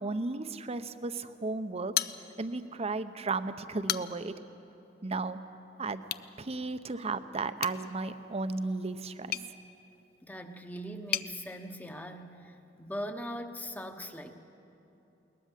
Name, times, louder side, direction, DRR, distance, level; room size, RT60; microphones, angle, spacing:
voice 1, 0.0-1.9 2.4-4.4 5.0-5.4 5.8-6.0 6.4-9.3, right 3 dB, 35° right, 11 dB, 0.7 m, -34 dB
sound 1, 1.9-2.7 3.1-3.2 3.7-4.4 6.0-6.3 7.6-11.3, left 11 dB, 55° left, 0.5 m, -37 dB
voice 2, 10.2-14.3, equal, 10° left, 6 dB, 1.0 m, -40 dB
21.0 x 19.5 x 7.5 m, 2.9 s
head